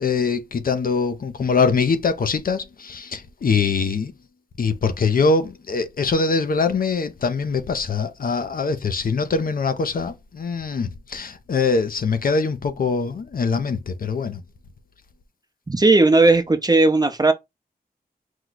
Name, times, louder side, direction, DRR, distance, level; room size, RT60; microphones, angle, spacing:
voice 1, 0.0-4.1 4.6-14.4, left 4 dB, 65° left, 0.6 m, -23 dB
voice 2, 15.7-17.3, right 2 dB, 25° right, 0.8 m, -16 dB
4.7 x 2.2 x 4.0 m
wide cardioid pair, 80°, 16 cm